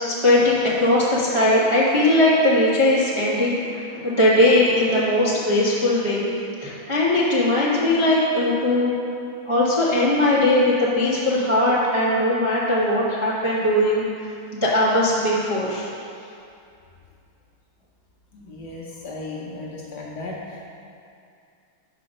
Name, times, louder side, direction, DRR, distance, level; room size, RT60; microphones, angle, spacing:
voice 1, 0.1-6.2 6.6-9.0 9.5-14.0 14.5-15.9, left 1 dB, 45° right, -9 dB, 0.3 m, -19 dB
voice 2, 18.3-20.7, left 2 dB, 65° left, -3 dB, 1.1 m, -35 dB
5.0 x 4.8 x 6.3 m, 2.5 s
omnidirectional pair, 2.4 m